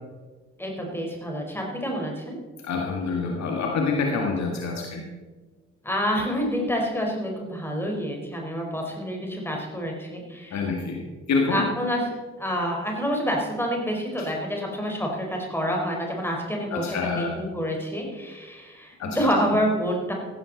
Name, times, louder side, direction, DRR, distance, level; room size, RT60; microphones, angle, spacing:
voice 1, 0.6-2.4 5.8-10.6 11.5-12.1 12.4-20.1, equal, 5° left, 0 dB, 4.6 m, -28 dB
voice 2, 2.6-5.1 10.5-11.7 16.7-17.4 19.0-19.2, left 4 dB, 50° left, 1 dB, 1.9 m, -27 dB
15.0 x 12.0 x 4.1 m, 1.3 s
figure-of-eight pair, 45°, 34 cm